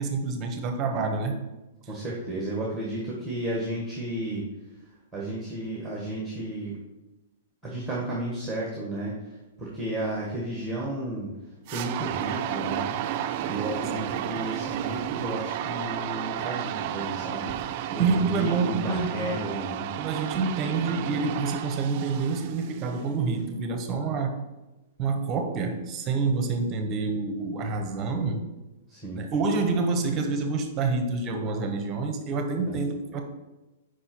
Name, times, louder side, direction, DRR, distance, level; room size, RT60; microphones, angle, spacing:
voice 1, 0.0-1.3 14.0-14.1 17.9-19.4 20.0-24.4 25.0-28.5 29.2-33.2, right 4 dB, 25° right, 6 dB, 0.8 m, -27 dB
voice 2, 1.9-4.4 5.1-6.8 7.6-11.3 11.7-12.9 13.4-19.9 28.9-29.2 32.7-32.8, right 1 dB, ahead, -4 dB, 1.2 m, -33 dB
sound 1, 11.7-23.0, right 11 dB, 40° right, 0.3 m, -32 dB
5.0 x 4.3 x 5.9 m, 1.1 s
hypercardioid pair, 165°, 0 cm